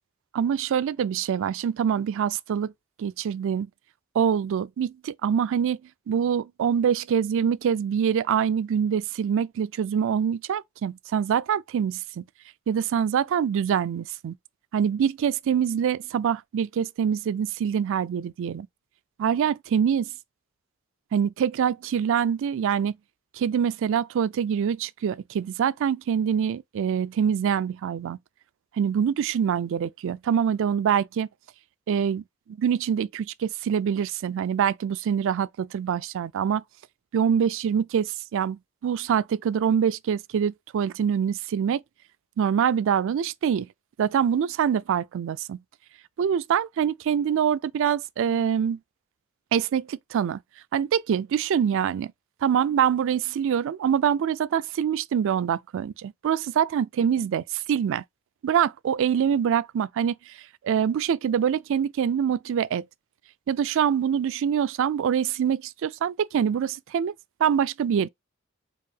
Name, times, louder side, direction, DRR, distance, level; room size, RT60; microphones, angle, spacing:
voice 1, 0.3-2.7 3.0-3.7 4.1-5.8 6.1-12.2 12.7-14.3 14.7-18.7 19.2-20.1 21.1-23.0 23.3-28.2 28.8-31.3 31.9-36.6 37.1-41.8 42.4-43.7 44.0-45.6 46.2-48.8 49.5-50.4 50.7-52.1 52.4-58.0 58.4-60.4 60.6-62.8 63.5-67.1 67.4-68.1, right 8 dB, 65° right, 0.3 m, -25 dB
4.7 x 2.5 x 2.7 m
head